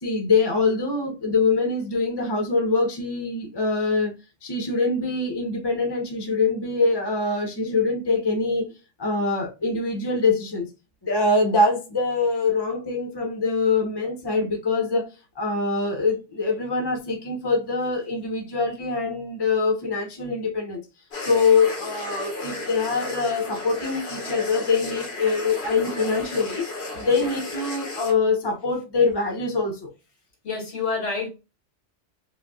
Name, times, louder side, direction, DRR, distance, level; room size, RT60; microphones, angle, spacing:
voice 1, 0.0-4.1 4.4-8.7 9.0-10.7 11.0-15.1 15.4-20.8 21.2-26.7 26.9-29.9, left 3 dB, 25° left, 0.9 m, -24 dB
sound 1, 21.1-28.1, left 3 dB, 60° left, 1.3 m, -34 dB
voice 2, 30.4-31.3, left 4 dB, 85° left, 2.0 m, -27 dB
5.0 x 2.3 x 2.3 m
omnidirectional pair, 1.2 m